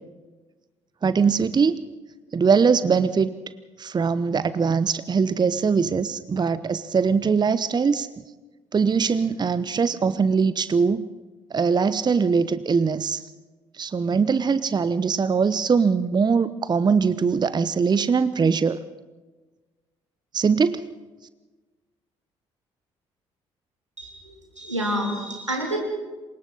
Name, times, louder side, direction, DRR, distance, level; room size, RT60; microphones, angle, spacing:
voice 1, 1.0-1.7 2.3-3.3 3.8-8.1 8.7-11.0 11.5-13.2 13.8-18.8 20.3-20.8, right 5 dB, 30° right, 15 dB, 0.9 m, -21 dB
voice 2, 24.0-25.8, equal, 90° right, 2 dB, 2.8 m, -29 dB
27.5 x 24.0 x 4.1 m, 1.3 s
figure-of-eight pair, 45°, 15 cm